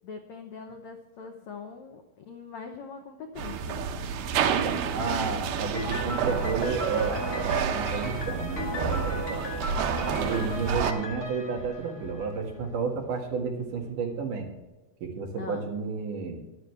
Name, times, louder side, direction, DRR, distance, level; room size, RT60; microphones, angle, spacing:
voice 1, 0.0-3.8 15.4-15.7, left 5 dB, 85° left, 3 dB, 1.6 m, -42 dB
sound 1, 3.4-10.9, right 7 dB, 80° right, 2.8 m, -29 dB
voice 2, 4.6-9.5 10.1-14.5 15.0-16.4, right 5 dB, 60° right, 0 dB, 3.1 m, -32 dB
Piano, 5.7-12.6, left 1 dB, 45° left, 1.3 m, -36 dB
sound 2, 11.5-14.7, equal, 25° right, 4.4 m, -48 dB
14.0 x 11.5 x 3.3 m, 1.1 s
omnidirectional pair, 4.6 m